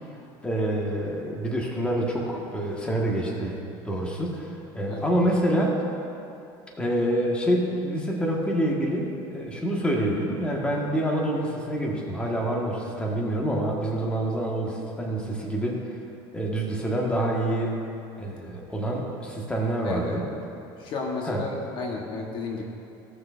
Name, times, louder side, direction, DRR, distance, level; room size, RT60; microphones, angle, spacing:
voice 1, 0.4-3.6 3.8-4.5 4.7-5.8 6.8-15.8 16.3-17.7 18.2-20.3 21.3-21.4, right 1 dB, 10° left, -2 dB, 1.4 m, -27 dB
voice 2, 19.8-20.2 20.8-22.6, left 3 dB, 50° left, 0 dB, 1.1 m, -32 dB
16.5 x 6.4 x 2.5 m, 2.7 s
supercardioid pair, 120°, 11 cm